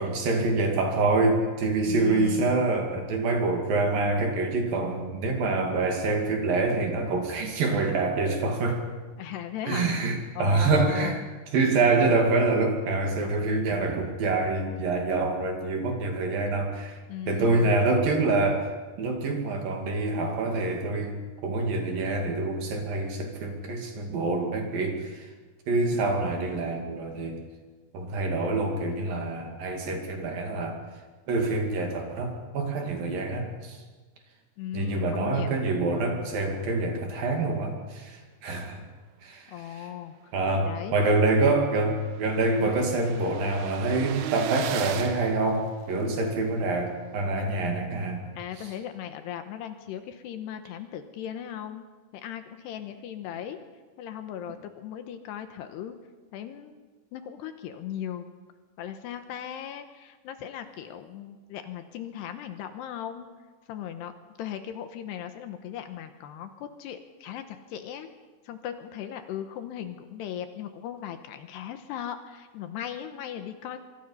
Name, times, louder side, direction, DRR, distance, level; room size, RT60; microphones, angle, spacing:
voice 1, 0.0-8.8 9.7-11.2 11.5-17.0 17.3-18.7 19.0-21.1 21.4-25.3 25.7-27.4 27.9-30.8 31.3-33.8 34.7-38.8 39.2-39.9 40.3-48.2 48.6-48.7, right 3 dB, 55° right, 3 dB, 3.7 m, -26 dB
voice 2, 1.9-2.6 9.2-9.9 10.4-11.2 17.1-17.8 34.6-35.5 39.5-40.1 40.6-41.6 42.1-42.2 48.4-51.8 52.1-53.6 54.0-55.9 56.3-56.8 57.1-58.3 58.8-63.3 63.7-64.1 64.4-68.1 68.4-73.8, left 10 dB, 75° left, 8 dB, 3.0 m, -37 dB
sound 1, 40.7-40.8 41.1-41.2 41.4-46.3, right 10 dB, 75° right, 3.2 m, -38 dB
24.5 x 24.0 x 5.6 m, 1.4 s
omnidirectional pair, 5.3 m